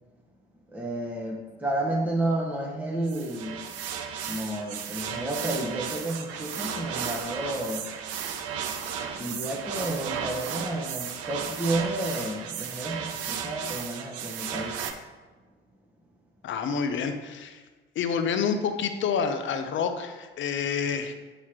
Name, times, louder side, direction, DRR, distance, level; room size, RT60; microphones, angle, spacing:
voice 1, 0.7-3.7 4.3-8.0 9.1-14.8, right 1 dB, 5° right, -2 dB, 0.9 m, -31 dB
sound 1, 3.0-14.9, right 7 dB, 55° right, 0.6 m, -34 dB
voice 2, 16.4-17.6 18.0-21.1, left 6 dB, 40° left, 8 dB, 0.6 m, -28 dB
7.1 x 3.0 x 4.6 m, 1.3 s
figure-of-eight pair, 55°, 29 cm